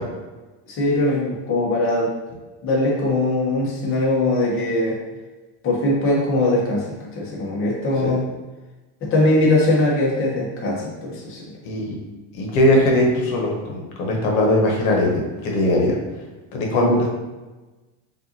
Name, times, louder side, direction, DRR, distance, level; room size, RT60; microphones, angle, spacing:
voice 1, 0.7-2.1 2.6-5.0 5.6-8.3 9.0-11.6 16.7-17.0, left 1 dB, 30° left, -4 dB, 1.0 m, -21 dB
voice 2, 11.6-12.0 12.3-16.0 16.5-17.1, left 1 dB, 75° left, 0 dB, 1.1 m, -20 dB
5.3 x 2.6 x 2.8 m, 1.2 s
supercardioid pair, 140°, 42 cm